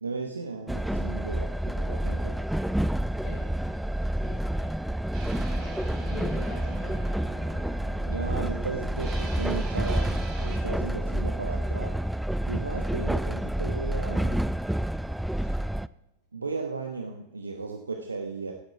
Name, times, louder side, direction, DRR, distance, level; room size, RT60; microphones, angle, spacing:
voice 1, 0.0-2.4 8.1-12.1 12.5-14.5 16.3-18.5, right 4 dB, 75° right, 4 dB, 1.0 m, -35 dB
Train, 0.7-15.9, right 1 dB, ahead, 0.3 m, -29 dB
voice 2, 3.2-3.8 4.1-4.9 5.2-5.8 6.1-6.9 15.3-15.6, left 2 dB, 40° left, -2 dB, 6.1 m, -44 dB
sound 1, 5.1-10.6, right 2 dB, 40° right, 3.6 m, -43 dB
16.0 x 9.0 x 4.8 m, 0.96 s
figure-of-eight pair, 90°, 0 cm